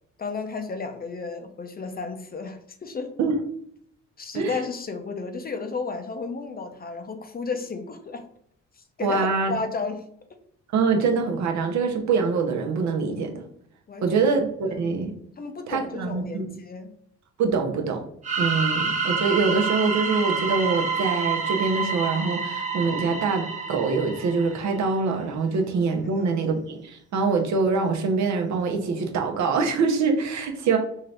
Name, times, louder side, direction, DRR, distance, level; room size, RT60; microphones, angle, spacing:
voice 1, 0.2-3.1 4.2-8.2 9.0-10.0 13.9-14.3 14.6-14.8 15.4-16.9 26.0-26.3, left 4 dB, 30° left, 6 dB, 0.6 m, -33 dB
voice 2, 9.0-9.5 10.7-13.4 14.0-15.1 15.7-16.5 17.4-18.0 18.4-30.8, right 4 dB, 65° right, 3 dB, 0.8 m, -24 dB
sound 1, 18.2-24.9, right 5 dB, 25° right, 0.8 m, -28 dB
3.7 x 2.7 x 3.3 m, 0.66 s
cardioid pair, 90°, 30 cm